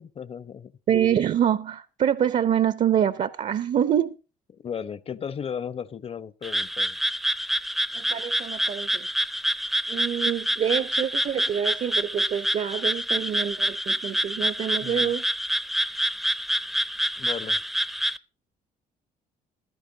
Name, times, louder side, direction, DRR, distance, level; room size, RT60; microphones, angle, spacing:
voice 1, 0.0-0.7 4.6-7.0 14.8-15.1 17.2-17.6, left 7 dB, 35° left, 0.9 m, -35 dB
voice 2, 0.9-4.2 7.9-9.1 9.9-15.2, right 9 dB, 50° right, 0.7 m, -26 dB
Frog, 6.4-18.2, right 1 dB, ahead, 0.6 m, -27 dB
16.0 x 13.0 x 4.0 m
cardioid pair, 110°, 16 cm